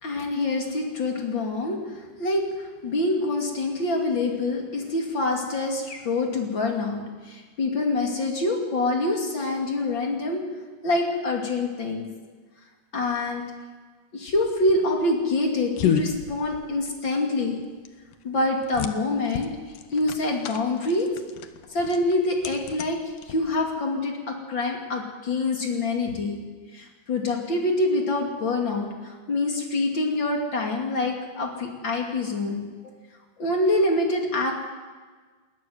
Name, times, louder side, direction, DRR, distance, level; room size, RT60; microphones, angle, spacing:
voice 1, 0.0-10.4 10.8-12.1 12.9-13.4 14.1-17.6 18.2-19.5 19.9-21.1 21.7-23.0 23.3-26.4 26.7-32.7 33.4-34.5, left 2 dB, 35° left, 1 dB, 3.1 m, -26 dB
sound 1, 14.3-23.8, left 8 dB, 75° left, 2.5 m, -33 dB
20.5 x 13.5 x 9.5 m, 1.4 s
omnidirectional pair, 3.9 m